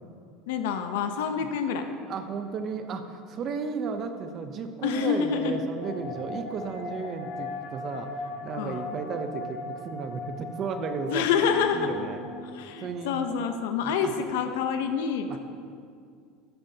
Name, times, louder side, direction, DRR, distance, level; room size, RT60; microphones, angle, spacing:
voice 1, 0.5-1.8 4.8-5.6 8.6-8.8 11.1-11.9 12.5-15.4, left 7 dB, 85° left, 6 dB, 0.7 m, -27 dB
voice 2, 2.1-11.3 11.7-12.2 12.8-13.2 13.8-14.1 15.3-15.4, right 5 dB, 30° right, 7 dB, 0.6 m, -34 dB
sound 1, 4.9-13.3, left 2 dB, 65° left, 1.3 m, -39 dB
12.5 x 8.9 x 2.8 m, 2.3 s
cardioid pair, 170°, 0 cm